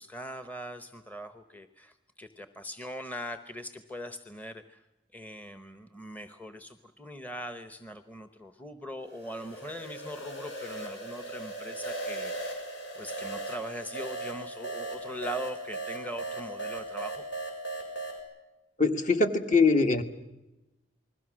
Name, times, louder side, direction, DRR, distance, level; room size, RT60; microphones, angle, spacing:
voice 1, 0.0-4.8 5.1-12.6 12.9-17.2, equal, 10° left, 9 dB, 0.9 m, -41 dB
sound 1, 9.1-18.2, right 2 dB, 85° left, 7.0 m, -38 dB
voice 2, 18.8-20.0, left 4 dB, 45° left, 6 dB, 1.8 m, -23 dB
28.5 x 21.0 x 6.3 m, 0.97 s
head